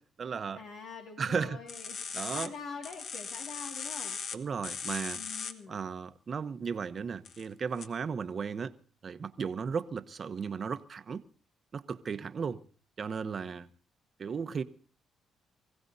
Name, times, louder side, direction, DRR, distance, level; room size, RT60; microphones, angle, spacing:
voice 1, 0.0-0.6 1.2-1.6 2.1-2.5 4.3-5.2 5.7-8.7 9.0-11.2 11.7-12.6 13.0-13.7 14.2-14.6, right 6 dB, 45° right, 0.9 m, -35 dB
voice 2, 0.5-2.0 2.3-4.2 5.2-5.8 13.4-13.6, left 5 dB, 85° left, 2.2 m, -45 dB
sound 1, 1.7-2.5 2.8-4.4 4.6-5.5 7.2-7.5 7.8-7.9, left 6 dB, 65° left, 1.3 m, -38 dB
24.5 x 16.0 x 2.7 m
cardioid pair, 90°, 0 cm